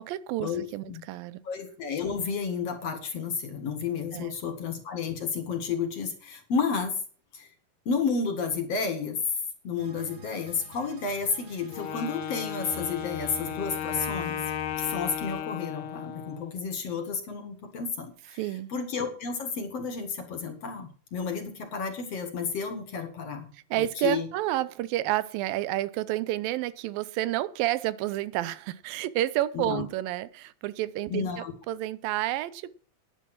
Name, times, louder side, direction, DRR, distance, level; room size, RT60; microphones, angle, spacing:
voice 1, 0.0-1.4 4.1-4.3 18.4-18.7 23.7-32.7, right 15 dB, 85° right, 2.5 m, -30 dB
voice 2, 1.4-7.0 7.3-7.5 7.9-9.2 9.6-14.4 14.8-18.4 18.7-24.3 29.5-29.8 31.1-31.5, left 5 dB, 50° left, 2.5 m, -31 dB
sound 1, 9.8-15.4, right 4 dB, 60° right, 2.9 m, -48 dB
Wind instrument woodwind instrument, 11.7-16.6, left 9 dB, 85° left, 2.9 m, -35 dB
11.0 x 10.0 x 5.9 m
omnidirectional pair, 4.0 m